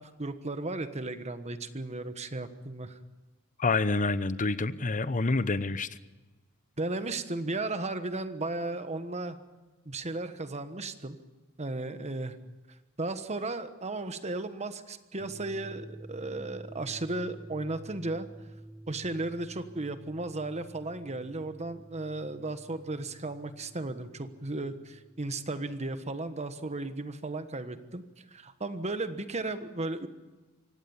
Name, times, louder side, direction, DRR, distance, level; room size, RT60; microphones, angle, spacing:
voice 1, 0.0-3.0 6.8-9.4 9.8-11.2 11.6-12.4 13.0-18.3 18.9-30.1, right 2 dB, 30° right, 10 dB, 1.3 m, -35 dB
voice 2, 3.6-5.9, left 3 dB, 40° left, 15 dB, 0.8 m, -27 dB
sound 1, 15.2-26.0, right 1 dB, 15° right, 5.9 m, -50 dB
24.5 x 17.5 x 7.2 m, 1.2 s
head